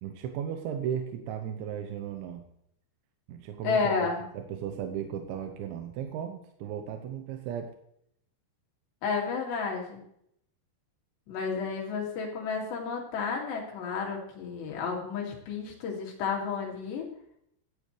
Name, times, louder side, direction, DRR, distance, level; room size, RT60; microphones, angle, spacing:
voice 1, 0.0-2.4 3.3-4.0 4.3-7.7, right 9 dB, 85° right, 5 dB, 3.3 m, -35 dB
voice 2, 3.6-4.2 9.0-10.0 11.3-17.1, left 5 dB, 70° left, -1 dB, 4.6 m, -31 dB
16.5 x 12.0 x 3.3 m, 0.72 s
omnidirectional pair, 5.2 m